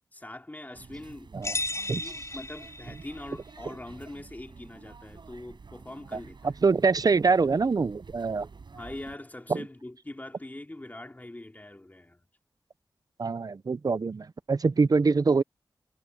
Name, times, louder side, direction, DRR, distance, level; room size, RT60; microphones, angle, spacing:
voice 1, 0.1-1.3 2.0-6.6 8.7-12.2, left 1 dB, 20° left, 3.6 m, -43 dB
sound 1, 0.7-9.2, right 4 dB, 75° right, 5.9 m, -50 dB
sound 2, 1.4-3.3, left 2 dB, 40° left, 4.5 m, -34 dB
voice 2, 6.4-8.5 9.5-9.6 13.2-15.4, right 4 dB, 50° right, 0.7 m, -24 dB
wide cardioid pair, 80°, 8 cm